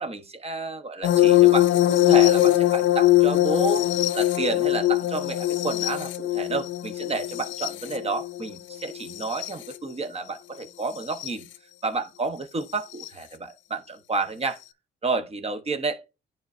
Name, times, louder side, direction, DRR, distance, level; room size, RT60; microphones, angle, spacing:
voice 1, 0.0-11.5 11.8-14.6 15.0-16.0, right 3 dB, 30° right, 1.0 m, -30 dB
sound 1, 1.0-9.7 11.0-11.3 13.0-13.1, left 15 dB, 75° left, 0.4 m, -21 dB
10.0 x 3.6 x 2.6 m
cardioid pair, 90°, 20 cm